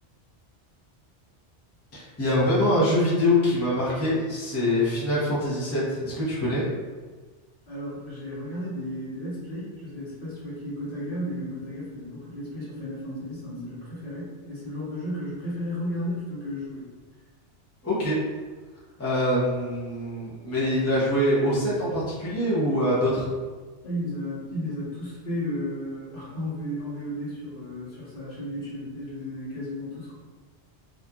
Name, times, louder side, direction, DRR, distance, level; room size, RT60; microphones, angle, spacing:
voice 1, 1.9-6.6 17.8-18.2 19.0-23.3, left 1 dB, 15° left, -9 dB, 0.7 m, -24 dB
voice 2, 7.7-16.8 23.8-30.1, equal, 50° left, -10 dB, 1.2 m, -34 dB
2.7 x 2.4 x 2.3 m, 1.4 s
omnidirectional pair, 1.2 m